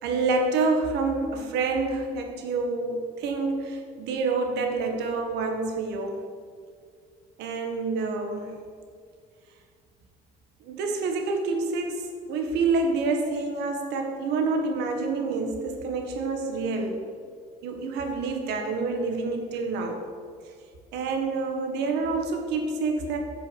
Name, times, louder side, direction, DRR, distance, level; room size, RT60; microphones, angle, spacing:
voice 1, 0.0-6.2 7.4-8.5 10.6-17.0 17.6-20.0 20.9-23.2, right 3 dB, 85° right, 4 dB, 1.7 m, -27 dB
9.2 x 6.5 x 7.2 m, 2.1 s
cardioid pair, 110°, 17 cm